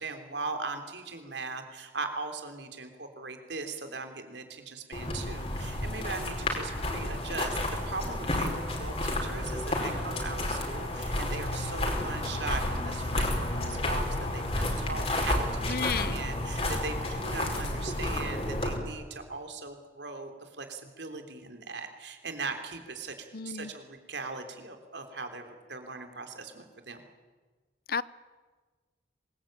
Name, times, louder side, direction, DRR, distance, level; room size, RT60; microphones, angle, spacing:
voice 1, 0.0-7.6 7.8-27.0, right 3 dB, 80° right, 6 dB, 3.5 m, -39 dB
sound 1, 4.9-18.7, left 1 dB, 35° left, 4.9 m, -31 dB
voice 2, 15.7-16.2 23.3-23.7 27.9-28.0, left 6 dB, 55° left, 18 dB, 0.7 m, -32 dB
25.0 x 21.5 x 9.0 m, 1.4 s
head